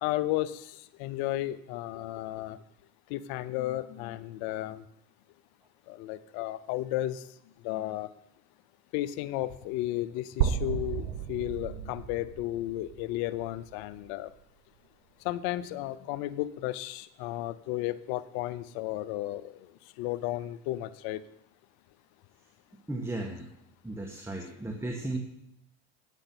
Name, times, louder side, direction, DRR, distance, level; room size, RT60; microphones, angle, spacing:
voice 1, 0.0-0.7 1.0-2.6 3.1-4.8 5.9-7.2 7.6-8.1 8.9-14.3 15.2-19.7 20.0-21.2, left 15 dB, 65° left, 15 dB, 0.8 m, -33 dB
sound 1, 10.4-14.3, right 9 dB, 70° right, 1.3 m, -34 dB
voice 2, 22.9-23.5 23.8-25.2, right 2 dB, 5° right, 2 dB, 1.4 m, -35 dB
9.1 x 8.2 x 6.0 m, 0.79 s
supercardioid pair, 90°, 39 cm